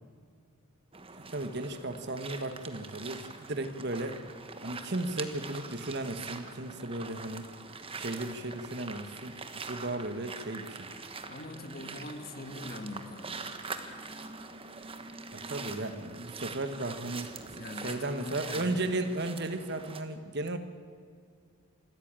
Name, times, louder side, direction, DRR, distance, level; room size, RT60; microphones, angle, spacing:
sound 1, 0.9-20.0, right 4 dB, 25° right, 1.2 m, -43 dB
voice 1, 1.2-4.2 4.6-7.5 8.0-10.9 15.5-17.4 17.8-20.6, right 2 dB, 50° right, 9 dB, 1.3 m, -35 dB
voice 2, 11.2-13.5 17.5-18.7, left 2 dB, 45° left, 8 dB, 1.6 m, -43 dB
26.0 x 13.5 x 8.9 m, 2.1 s
head